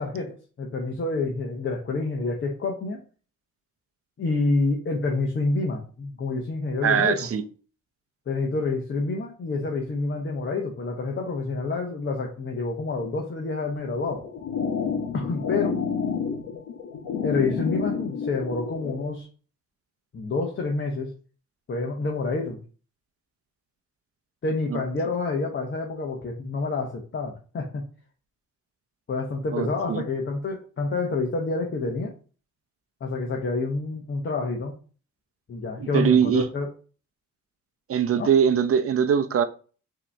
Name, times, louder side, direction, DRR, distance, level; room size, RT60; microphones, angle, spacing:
voice 1, 0.0-3.0 4.2-7.3 8.3-14.2 15.1-15.8 17.2-19.3 20.1-21.1 21.7-22.6 24.4-27.8 29.1-32.1 33.0-34.7 35.5-36.7 38.2-38.3, left 3 dB, 40° left, 1 dB, 1.0 m, -28 dB
voice 2, 6.8-7.4 24.7-24.8 29.5-30.0 35.8-36.5 37.9-39.4, right 7 dB, 50° right, 9 dB, 0.6 m, -22 dB
sound 1, 14.0-19.0, left 6 dB, 75° left, 1.0 m, -29 dB
4.9 x 2.9 x 3.4 m, 0.38 s
cardioid pair, 90°, 30 cm